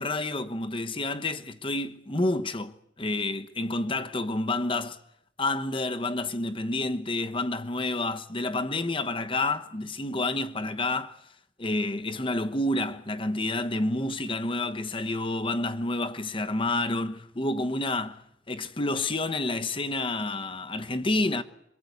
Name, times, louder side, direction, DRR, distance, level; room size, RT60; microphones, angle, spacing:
voice 1, 0.0-5.0 5.4-11.2 11.6-18.2 18.5-21.4, left 2 dB, 25° left, 1.1 m, -29 dB
27.0 x 23.5 x 8.4 m
head